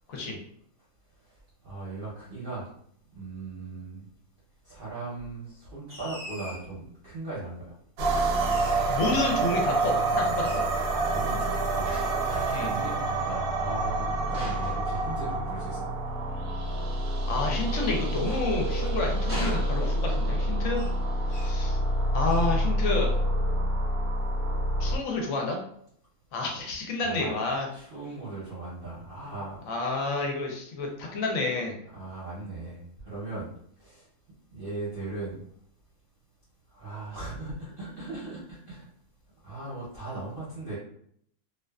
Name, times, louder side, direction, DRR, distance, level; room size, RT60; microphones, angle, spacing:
voice 1, 1.6-2.7 3.2-4.1 4.6-7.7 10.9-11.9 12.2-15.9 27.0-27.3 27.7-29.6 31.9-33.5 33.8-34.1 34.5-35.4 36.7-38.9 39.4-40.8, right 3 dB, 50° right, -8 dB, 0.7 m, -38 dB
sound 1, 5.9-6.7 8.3-9.0 10.4-10.7 11.8-12.8 14.3-15.6 17.7-18.9 19.3-20.2 20.7-21.0 21.3-21.6 22.2-22.6, equal, 10° right, 0.7 m, -41 dB
sound 2, 8.0-25.0, right 1 dB, 80° right, 1.0 m, -27 dB
voice 2, 8.9-10.7 12.5-12.9 17.3-20.8 21.3-21.8 22.1-23.2 24.8-25.6 26.3-27.7 29.7-31.8, left 3 dB, 70° left, 1 dB, 0.9 m, -30 dB
2.4 x 2.4 x 2.2 m, 0.66 s
omnidirectional pair, 1.6 m